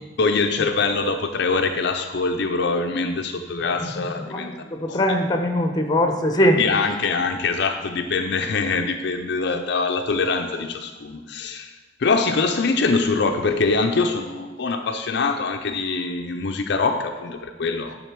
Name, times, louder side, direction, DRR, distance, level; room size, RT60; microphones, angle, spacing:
voice 1, 0.2-4.5 4.9-5.0 6.6-18.0, left 4 dB, 60° left, 5 dB, 0.5 m, -23 dB
voice 2, 3.9-4.4 4.7-6.6, equal, 20° left, 4 dB, 0.8 m, -21 dB
10.5 x 3.9 x 6.0 m, 1.3 s
head